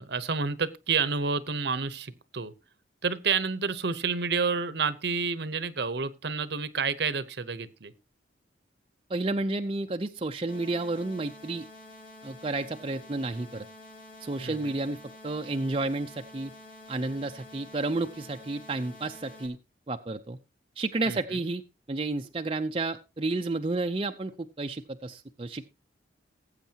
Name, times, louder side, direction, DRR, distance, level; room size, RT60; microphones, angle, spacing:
voice 1, 0.0-2.5 3.0-7.9 14.4-14.7 21.1-21.4, right 5 dB, 60° right, 15 dB, 0.8 m, -29 dB
voice 2, 9.1-11.7 12.2-13.7 14.2-15.0 15.2-16.5 16.9-19.6 19.9-20.4 20.8-21.6 21.9-25.7, right 2 dB, 30° right, 5 dB, 0.5 m, -31 dB
sound 1, 10.5-19.5, left 2 dB, 45° left, 3.3 m, -49 dB
19.0 x 8.2 x 2.8 m, 0.25 s
head